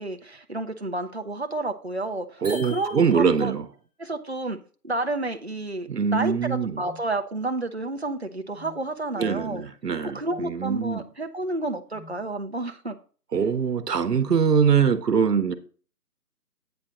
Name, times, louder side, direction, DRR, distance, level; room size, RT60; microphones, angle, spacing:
voice 1, 0.0-3.5 4.0-4.6 4.8-9.6 10.1-13.0 13.4-13.5, right 2 dB, 45° right, 0.5 m, -30 dB
sound 1, 2.4-3.6, left 1 dB, 5° left, 2.1 m, -42 dB
voice 2, 2.4-3.7 5.9-6.8 9.2-11.0 13.3-15.5, right 6 dB, 75° right, 1.0 m, -23 dB
sound 2, 6.8-7.1 8.5-8.8 10.3-10.6 11.9-12.2, left 2 dB, 45° left, 2.1 m, -47 dB
8.7 x 4.3 x 4.9 m
figure-of-eight pair, 175°, 48 cm